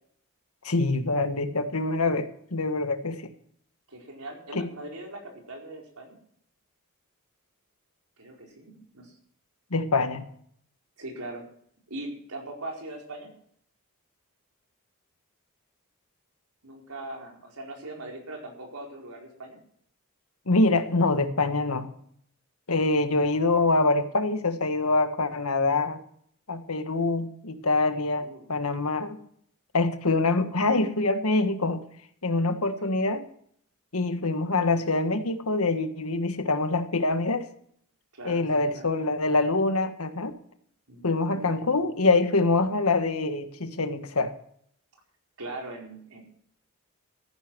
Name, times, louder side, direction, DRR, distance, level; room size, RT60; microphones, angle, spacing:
voice 1, 0.6-3.2 4.5-4.7 9.7-10.3 20.5-21.9 22.7-26.0 26.5-29.2 29.7-31.8 32.2-33.2 33.9-37.5 38.2-40.3 41.0-44.3, left 3 dB, 80° left, 8 dB, 1.5 m, -25 dB
voice 2, 3.9-6.2 8.2-9.1 11.0-11.4 11.9-13.3 16.6-19.6 28.2-28.5 32.8-33.0 38.1-38.4 38.7-38.9 40.9-41.5 41.8-41.9 45.4-46.2, right 2 dB, 85° right, 0 dB, 4.6 m, -40 dB
14.5 x 10.5 x 6.2 m, 0.65 s
head